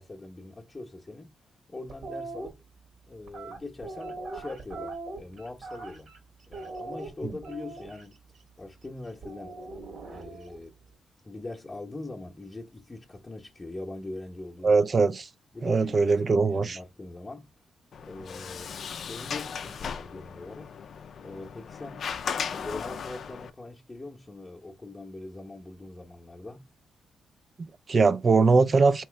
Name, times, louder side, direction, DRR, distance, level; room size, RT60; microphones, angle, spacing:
voice 1, 0.0-1.4 1.7-2.6 3.1-6.1 6.5-8.2 8.6-9.6 10.1-10.8 11.2-14.8 15.5-17.5 18.0-20.8 21.2-22.1 22.5-26.7, left 2 dB, 25° left, 0.8 m, -42 dB
sound 1, 1.9-2.5 3.3-6.2 6.5-8.0 9.2-10.6, right 3 dB, 65° right, 1.5 m, -40 dB
voice 2, 14.6-15.3 15.6-16.8 27.6-29.0, right 4 dB, 45° right, 0.4 m, -22 dB
Sliding door, 17.9-23.5, left 7 dB, 65° left, 0.4 m, -37 dB
3.2 x 3.0 x 3.3 m
cardioid pair, 70°, 0 cm